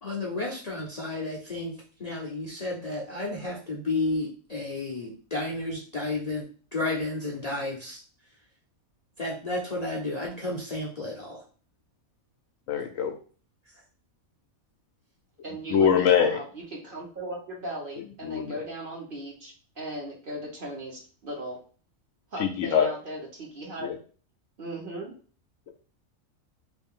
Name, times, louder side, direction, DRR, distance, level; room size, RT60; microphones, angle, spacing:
voice 1, 0.0-6.5 6.7-8.0 9.2-11.4, left 2 dB, 40° left, -4 dB, 0.6 m, -32 dB
voice 2, 12.7-13.1 15.7-16.4 18.2-18.4 22.4-22.9 23.8-23.9, left 8 dB, 70° left, 5 dB, 0.9 m, -22 dB
voice 3, 15.4-21.6 22.3-23.9 24.6-25.1, right 1 dB, 45° right, -3 dB, 1.0 m, -38 dB
3.2 x 2.5 x 3.6 m, 0.40 s
omnidirectional pair, 1.4 m